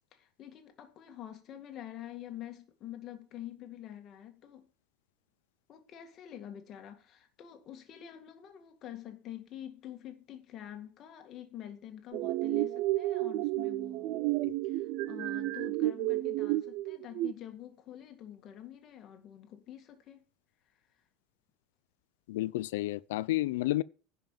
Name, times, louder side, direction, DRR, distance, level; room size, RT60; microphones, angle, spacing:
voice 1, 0.1-4.7 5.7-14.2 14.6-20.2, left 11 dB, 35° left, 2.0 m, -47 dB
sound 1, 12.1-17.3, right 17 dB, 50° right, 0.4 m, -31 dB
voice 2, 22.3-23.8, left 16 dB, 90° left, 0.5 m, -31 dB
10.5 x 5.6 x 7.4 m
supercardioid pair, 155°, 0 cm